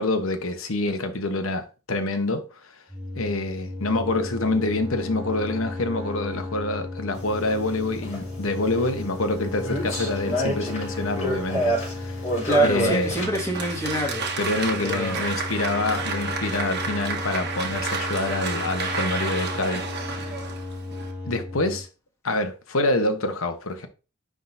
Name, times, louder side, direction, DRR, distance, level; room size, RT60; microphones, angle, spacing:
voice 1, 0.0-2.7 3.1-12.2 12.6-13.1 14.4-20.4 21.2-21.9 22.2-23.9, left 2 dB, 70° left, 1.1 m, -26 dB
sound 1, 2.9-21.8, left 2 dB, 10° right, 1.7 m, -35 dB
sound 2, 7.1-13.3, right 2 dB, 35° left, 4.0 m, -28 dB
voice 2, 12.5-14.3 14.8-15.3, left 1 dB, 15° left, 2.0 m, -27 dB
Applause, 13.0-21.1, right 4 dB, 50° right, 1.3 m, -31 dB
10.0 x 3.6 x 2.7 m
head